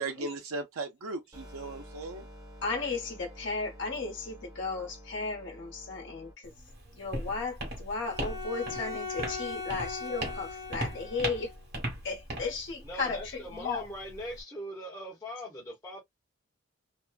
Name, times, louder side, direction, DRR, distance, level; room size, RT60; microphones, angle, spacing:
voice 1, 0.0-2.3, right 3 dB, 85° right, 0.6 m, -37 dB
sound 1, 1.3-6.3, equal, 20° right, 1.1 m, -49 dB
voice 2, 2.6-6.5 6.9-11.5 12.0-13.9, left 4 dB, 55° left, 1.1 m, -35 dB
Walk footsteps, 6.4-14.4, right 1 dB, 50° right, 1.3 m, -39 dB
Bowed string instrument, 8.0-11.6, left 4 dB, 40° left, 0.9 m, -39 dB
voice 3, 12.8-16.0, equal, 15° left, 1.0 m, -40 dB
2.8 x 2.2 x 2.3 m
head